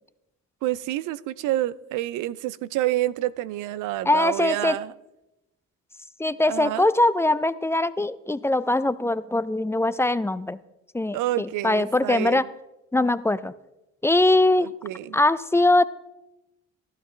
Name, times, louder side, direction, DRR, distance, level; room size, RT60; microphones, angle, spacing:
voice 1, 0.6-4.9 6.5-6.9 11.1-12.5 14.6-15.2, right 15 dB, 90° right, 0.5 m, -28 dB
voice 2, 4.1-4.8 6.2-10.6 10.9-12.5 12.9-13.5 14.0-14.7 15.1-15.8, left 2 dB, 10° left, 0.3 m, -22 dB
12.5 x 12.0 x 3.2 m
cardioid pair, 90°, 30 cm